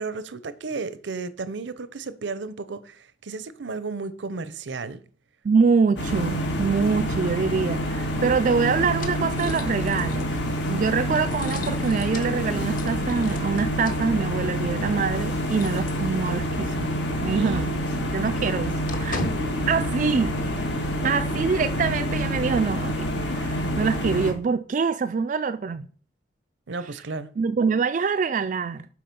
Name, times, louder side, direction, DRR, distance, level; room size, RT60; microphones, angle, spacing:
voice 1, 0.0-5.0 17.3-18.1 26.7-27.3, right 4 dB, 80° right, 0.6 m, -33 dB
voice 2, 5.4-10.3 10.7-16.9 17.2-17.6 18.1-19.2 19.7-20.3 21.0-25.9 27.4-28.9, right 5 dB, 45° right, 0.3 m, -25 dB
sound 1, 6.0-24.3, equal, 80° left, 1.7 m, -27 dB
sound 2, 7.9-16.6 16.9-17.1 17.4-20.9, left 2 dB, 45° left, 1.0 m, -40 dB
7.6 x 4.9 x 5.3 m
head